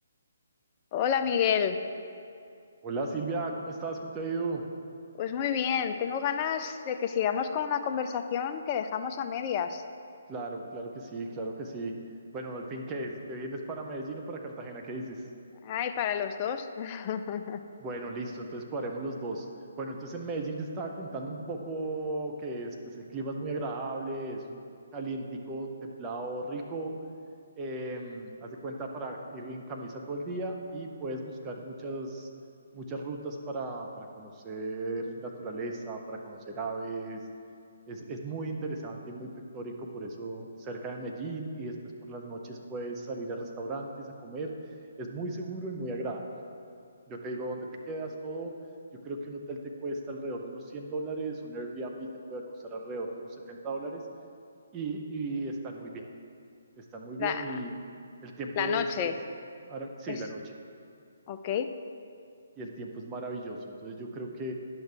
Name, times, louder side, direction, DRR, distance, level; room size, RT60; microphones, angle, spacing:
voice 1, 0.9-1.8 5.2-9.8 15.6-17.6 57.2-57.6 58.6-59.2 60.1-60.2 61.3-61.7, left 8 dB, 30° left, 8 dB, 0.4 m, -30 dB
voice 2, 2.8-4.6 10.3-11.9 12.3-15.2 17.8-19.5 19.8-24.6 24.9-26.9 27.6-32.3 32.7-37.2 37.9-41.7 42.0-44.5 45.0-46.3 47.1-48.5 49.0-54.0 54.7-56.1 56.8-57.7 58.2-59.1 59.6-60.4 62.6-64.5, right 2 dB, 20° right, 1 dB, 0.7 m, -36 dB
10.5 x 6.4 x 3.4 m, 2.4 s
figure-of-eight pair, 140°, 0 cm